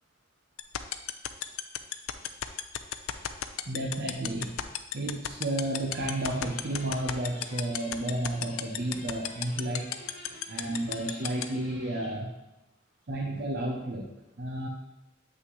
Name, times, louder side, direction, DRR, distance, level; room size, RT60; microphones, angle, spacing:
sound 1, 0.6-11.4, left 12 dB, 85° left, 0.4 m, -31 dB
voice 1, 3.7-4.6 4.9-10.0 10.5-12.3 13.1-14.7, right 1 dB, 50° right, 0 dB, 0.7 m, -32 dB
sound 2, 5.8-12.2, left 1 dB, 40° left, 1.3 m, -49 dB
7.8 x 5.8 x 3.1 m, 0.94 s
head